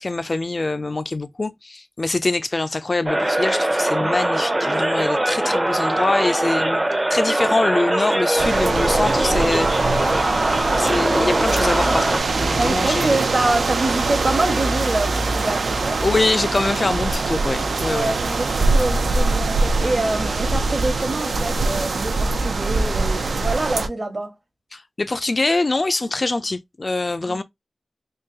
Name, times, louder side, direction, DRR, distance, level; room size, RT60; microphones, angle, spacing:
voice 1, 0.0-6.8 7.1-10.2 10.7-13.2 16.0-18.1 24.7-27.4, left 2 dB, 45° left, 0.4 m, -24 dB
sound 1, 3.1-12.2, right 1 dB, 25° right, 0.6 m, -21 dB
sound 2, 8.4-23.9, right 3 dB, 85° right, 0.5 m, -23 dB
voice 2, 12.6-16.0 17.9-24.3 27.3-27.4, right 2 dB, 50° right, 1.1 m, -25 dB
3.7 x 2.9 x 2.8 m
wide cardioid pair, 65°, 0 cm